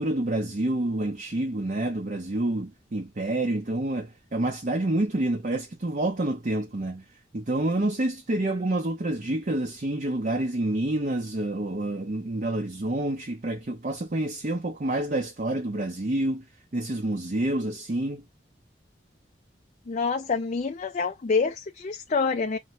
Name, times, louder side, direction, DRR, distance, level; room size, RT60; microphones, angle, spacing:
voice 1, 0.0-7.0 7.3-16.4 16.7-18.2, right 1 dB, 45° right, 0.6 m, -28 dB
voice 2, 19.9-22.6, left 4 dB, 40° left, 0.4 m, -27 dB
4.2 x 2.7 x 2.9 m
head